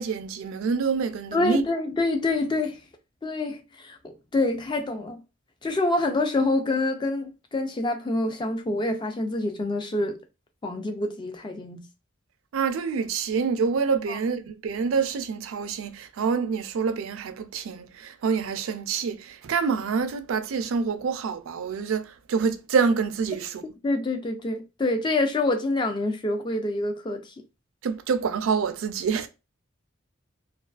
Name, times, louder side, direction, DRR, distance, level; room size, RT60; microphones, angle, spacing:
voice 1, 0.0-1.6 12.5-23.6 27.8-29.3, right 5 dB, 70° right, 0.3 m, -26 dB
voice 2, 1.3-2.8 3.2-5.2 5.6-10.2 10.6-11.8 14.1-14.2 23.8-27.3, left 2 dB, 20° left, 0.3 m, -26 dB
2.3 x 2.2 x 2.3 m
head